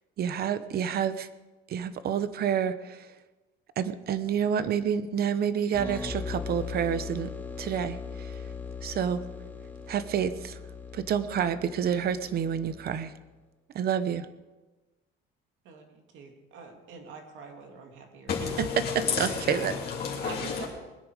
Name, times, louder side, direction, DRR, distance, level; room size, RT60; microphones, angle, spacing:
voice 1, 0.2-1.3 1.7-3.1 3.8-7.3 7.6-8.4 8.8-9.2 9.9-10.6 10.9-13.1 13.7-14.3 18.9-19.8, right 8 dB, 45° right, 13 dB, 0.9 m, -29 dB
sound 1, 5.7-13.3, left 5 dB, 10° left, 1.9 m, -39 dB
voice 2, 16.1-18.3 20.2-20.7, right 5 dB, 65° right, 3 dB, 2.8 m, -44 dB
voice 3, 18.3-20.7, left 6 dB, 50° left, -3 dB, 3.0 m, -31 dB
21.5 x 10.0 x 4.9 m, 1.2 s
cardioid pair, 140°, 21 cm